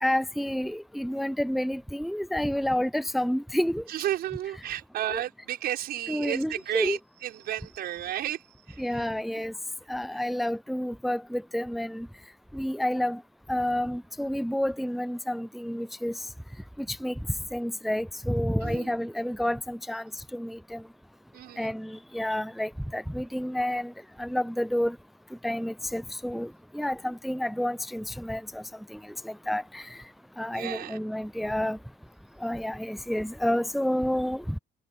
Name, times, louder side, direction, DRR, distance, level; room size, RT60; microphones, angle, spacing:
voice 1, 0.0-3.8 5.1-5.2 6.1-7.0 8.8-9.5 9.9-12.1 12.5-13.2 13.5-16.1 16.8-17.1 17.5-20.0 20.3-20.8 21.6-23.9 24.2-25.0 25.4-28.6 28.9-29.0 29.2-30.0 30.4-31.8 32.4-34.6, left 1 dB, ahead, 0.6 m, -29 dB
voice 2, 3.9-9.1 9.3-9.4 10.1-10.2 18.6-19.0 21.3-21.7 30.5-31.1, right 12 dB, 70° right, 5.7 m, -33 dB
cardioid pair, 110°, 17 cm